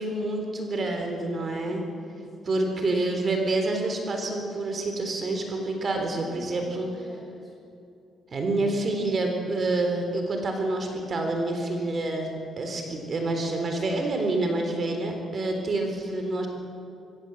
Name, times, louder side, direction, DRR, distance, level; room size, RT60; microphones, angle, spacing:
voice 1, 0.0-1.8 2.4-6.9 8.3-16.5, right 2 dB, 45° right, 4 dB, 3.7 m, -28 dB
voice 2, 1.0-2.6 6.2-7.5, left 1 dB, 30° left, -1 dB, 7.8 m, -49 dB
24.0 x 16.5 x 7.9 m, 2.6 s
cardioid pair, 90°, 0 cm